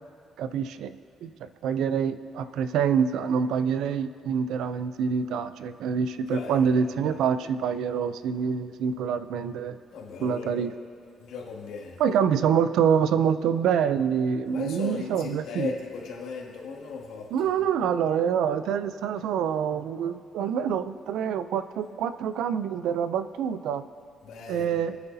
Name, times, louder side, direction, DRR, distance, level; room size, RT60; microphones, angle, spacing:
voice 1, 0.4-9.8 10.2-10.7 12.0-15.7 17.3-23.8 24.5-25.0, right 7 dB, 80° right, 12 dB, 0.5 m, -26 dB
voice 2, 6.3-6.6 7.0-7.2 9.9-10.7 11.2-12.0 14.5-17.7 24.2-24.8, left 5 dB, 80° left, -2 dB, 2.2 m, -37 dB
26.5 x 9.6 x 2.8 m, 2.4 s
cardioid pair, 140°, 0 cm